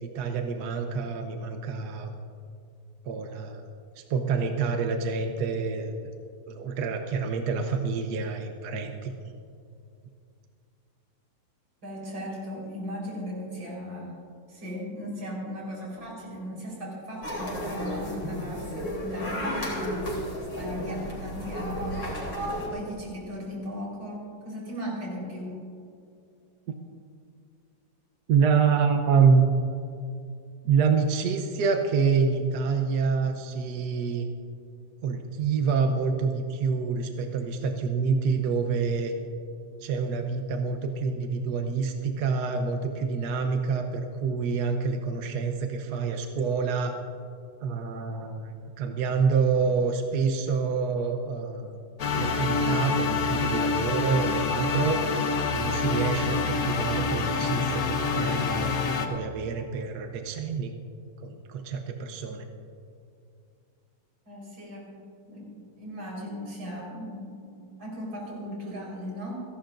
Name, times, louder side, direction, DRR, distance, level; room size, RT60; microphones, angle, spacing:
voice 1, 0.0-2.1 3.1-3.6 4.1-6.1 6.5-9.3 28.3-29.4 30.6-34.3 35.0-39.1 39.8-46.9 47.6-51.8 52.1-55.0 55.5-58.8 59.1-60.7 61.2-62.5, right 5 dB, 60° right, 4 dB, 1.3 m, -27 dB
voice 2, 11.8-14.2 14.5-20.2 20.5-22.0 22.7-25.6 64.3-69.4, equal, 75° right, -4 dB, 5.2 m, -37 dB
sound 1, 17.2-22.7, equal, 90° left, 4.2 m, -33 dB
sound 2, 52.0-59.1, left 4 dB, 55° left, 1.3 m, -27 dB
29.5 x 11.5 x 2.6 m, 2.5 s
omnidirectional pair, 2.1 m